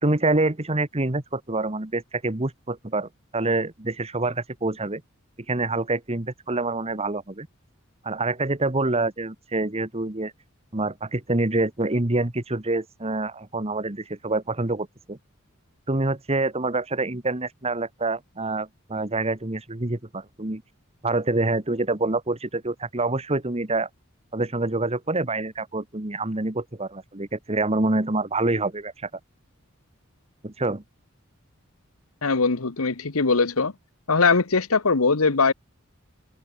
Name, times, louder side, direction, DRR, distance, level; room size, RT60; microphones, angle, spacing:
voice 1, 0.0-5.0 5.5-7.5 8.0-10.3 10.7-15.2 15.9-20.6 21.0-23.9 24.3-29.1 30.4-30.8, right 2 dB, 30° right, 1.5 m, -26 dB
voice 2, 32.2-33.7 34.1-35.5, left 4 dB, 85° left, 1.3 m, -21 dB
head